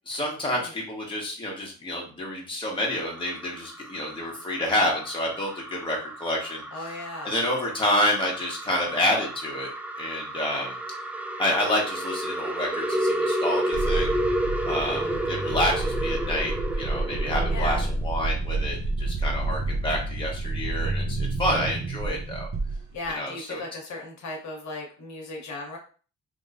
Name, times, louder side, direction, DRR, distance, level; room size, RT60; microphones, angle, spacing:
voice 1, 0.1-9.7 10.0-10.7 11.4-14.1 14.6-22.5 23.1-23.6, left 1 dB, 15° left, -3 dB, 1.4 m, -28 dB
sound 1, 2.8-18.0, right 1 dB, 5° right, 0.4 m, -31 dB
voice 2, 6.7-7.3 14.8-15.2 17.5-17.8 22.9-25.8, left 2 dB, 70° left, 0 dB, 1.1 m, -36 dB
sound 2, 13.7-23.1, right 2 dB, 45° right, 0.8 m, -29 dB
3.6 x 3.1 x 2.6 m, 0.39 s
cardioid pair, 90°, 30 cm